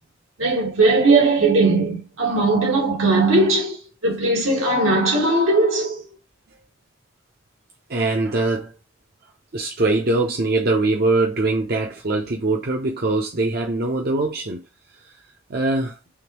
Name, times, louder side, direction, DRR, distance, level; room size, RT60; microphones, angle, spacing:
voice 1, 0.4-6.0, right 2 dB, 85° right, 1.7 m, -18 dB
voice 2, 7.9-8.7 9.5-14.6 15.5-16.0, right 2 dB, 50° right, 0.7 m, -22 dB
3.6 x 3.1 x 3.0 m
head